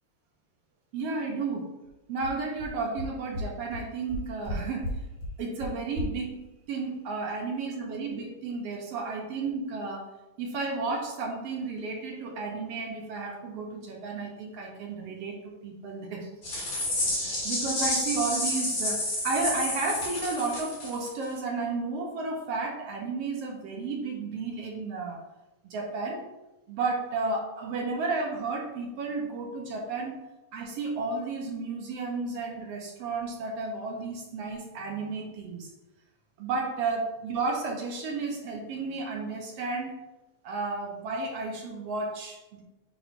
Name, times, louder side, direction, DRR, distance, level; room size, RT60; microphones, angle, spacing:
voice 1, 0.9-1.8 2.1-5.0 5.4-10.1 10.4-16.3 17.2-25.2 25.6-26.3 26.7-30.2 30.5-35.7 36.4-39.9 40.4-42.6, right 3 dB, 65° right, 0 dB, 1.8 m, -32 dB
sound 1, 1.8-1.9 2.2-2.3 2.6-2.7 3.0-3.1 3.3-3.4 3.7-3.8 4.1-4.5 4.8-4.9 5.2-5.3 5.6-5.7 5.9-6.0, left 1 dB, 35° right, 2.1 m, -34 dB
sound 2, 16.4-21.2, left 1 dB, 50° left, 3.0 m, -30 dB
9.1 x 4.8 x 2.7 m, 1.0 s
omnidirectional pair, 3.3 m